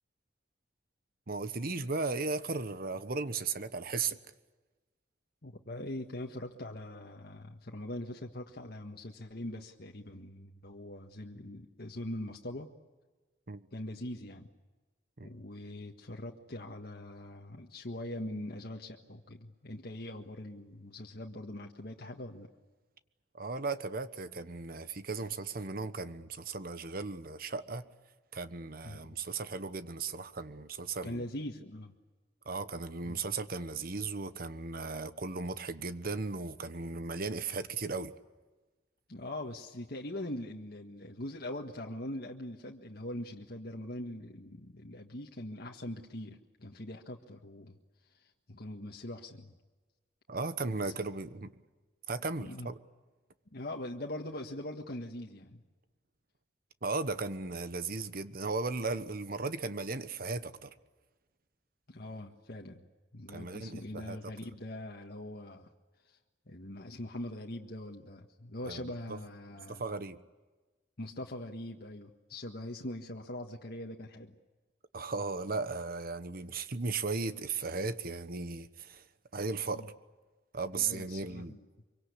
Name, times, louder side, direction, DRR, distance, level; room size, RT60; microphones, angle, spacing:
voice 1, 1.3-4.2 13.5-13.7 15.2-15.3 23.3-27.8 28.3-31.2 32.4-38.1 50.3-51.5 52.1-52.8 56.8-60.7 63.3-64.3 68.6-68.8 69.1-69.2 69.7-70.2 74.9-79.0 79.3-79.9 80.5-81.5, right 4 dB, 55° right, 1.2 m, -36 dB
voice 2, 5.4-12.7 13.7-14.5 15.2-22.5 28.8-29.2 31.0-31.9 33.0-33.1 39.1-47.8 48.1-49.5 50.8-51.2 52.4-52.7 53.5-55.6 61.9-62.8 63.1-65.7 66.0-66.2 66.5-69.8 71.0-74.3 79.7-79.9 80.7-81.6, left 1 dB, 60° left, 1.6 m, -42 dB
25.0 x 24.0 x 8.4 m
head